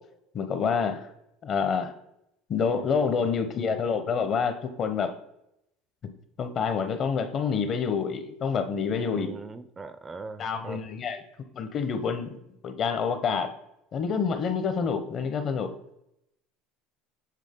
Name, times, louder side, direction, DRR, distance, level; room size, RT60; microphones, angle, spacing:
voice 1, 0.3-1.1 1.4-1.9 2.5-5.1 6.0-6.1 6.4-9.3 10.4-11.2 11.5-12.3 12.6-13.5 13.9-15.7, left 6 dB, 45° left, 9 dB, 0.7 m, -27 dB
voice 2, 2.7-3.3 8.9-10.8, right 4 dB, 20° right, 12 dB, 0.4 m, -41 dB
7.5 x 3.5 x 3.6 m, 0.81 s
supercardioid pair, 105°, 0 cm